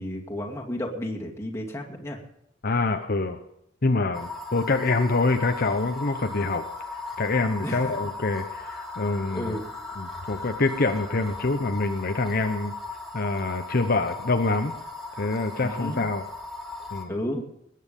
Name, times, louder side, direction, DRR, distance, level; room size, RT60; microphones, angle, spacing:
voice 1, 0.0-2.2 7.6-8.0 9.3-9.6 15.6-16.1 17.1-17.4, equal, 15° left, -1 dB, 2.4 m, -32 dB
voice 2, 2.6-3.4 3.8-6.6 7.2-9.6 10.0-12.7 13.1-14.7 15.2-16.2 16.9-17.2, left 3 dB, 50° left, 6 dB, 0.9 m, -25 dB
sound 1, 4.1-17.0, left 3 dB, ahead, 2.8 m, -37 dB
20.5 x 9.6 x 5.4 m, 0.78 s
head